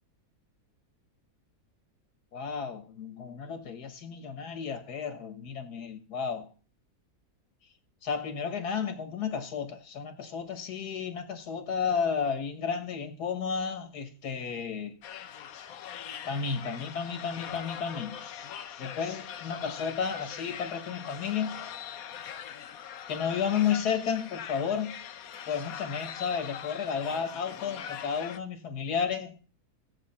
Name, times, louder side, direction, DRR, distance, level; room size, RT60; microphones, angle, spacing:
voice 1, 2.3-6.5 8.0-14.9 16.2-18.2 18.8-21.6 23.1-25.0 25.5-29.4, left 6 dB, 90° left, 1.9 m, -32 dB
sound 1, 15.0-28.4, left 9 dB, 70° left, 1.2 m, -42 dB
17.0 x 7.5 x 4.3 m
omnidirectional pair, 1.6 m